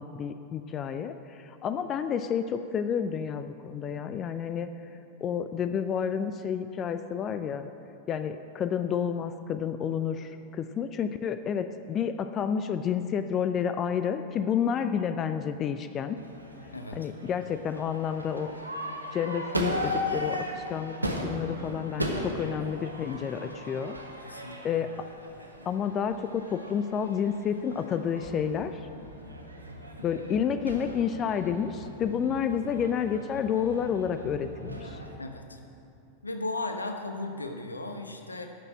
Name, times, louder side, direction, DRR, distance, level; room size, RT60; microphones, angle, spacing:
voice 1, 0.0-4.7 5.2-7.7 8.1-16.2 16.9-18.5 19.1-24.0 24.6-25.1 25.7-28.8 30.0-35.0, left 7 dB, 30° left, 10 dB, 0.4 m, -30 dB
Crowd / Fireworks, 16.2-35.2, equal, 85° right, 1.2 m, -37 dB
voice 2, 16.7-17.1 24.2-24.8 35.2-35.6 36.2-38.5, left 2 dB, 80° left, 6 dB, 0.9 m, -36 dB
11.5 x 6.6 x 8.3 m, 2.7 s
figure-of-eight pair, 90°, 0 cm